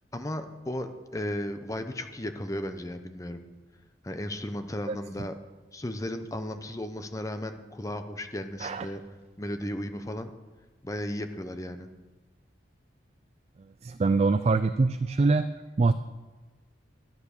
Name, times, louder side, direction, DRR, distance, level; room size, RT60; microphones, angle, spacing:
voice 1, 0.1-3.4 4.0-5.3 5.7-9.0 9.4-10.3 10.8-11.9, left 1 dB, 15° left, 8 dB, 0.7 m, -35 dB
voice 2, 13.8-15.5 15.8-15.9, right 3 dB, 35° right, 11 dB, 0.3 m, -24 dB
12.5 x 9.6 x 6.6 m, 1.3 s
head